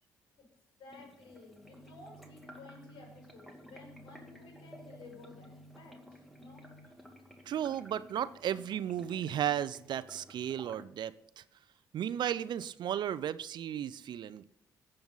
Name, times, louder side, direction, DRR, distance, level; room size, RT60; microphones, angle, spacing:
voice 1, 0.8-6.7, left 3 dB, 70° left, 0 dB, 5.7 m, -54 dB
sound 1, 0.9-10.9, left 1 dB, ahead, 2.4 m, -55 dB
sound 2, 1.6-6.9, right 1 dB, 40° left, 2.2 m, -57 dB
voice 2, 7.5-11.4 11.9-14.4, right 10 dB, 65° right, 16 dB, 0.6 m, -34 dB
19.0 x 7.8 x 4.0 m, 0.72 s
hypercardioid pair, 50°, 8 cm